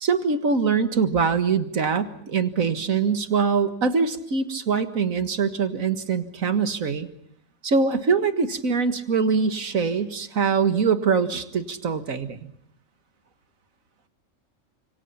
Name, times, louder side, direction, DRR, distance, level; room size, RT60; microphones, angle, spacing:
voice 1, 0.0-7.1 7.6-12.5, right 5 dB, 90° right, 9 dB, 2.1 m, -23 dB
30.0 x 26.5 x 5.8 m, 0.65 s
omnidirectional pair, 1.4 m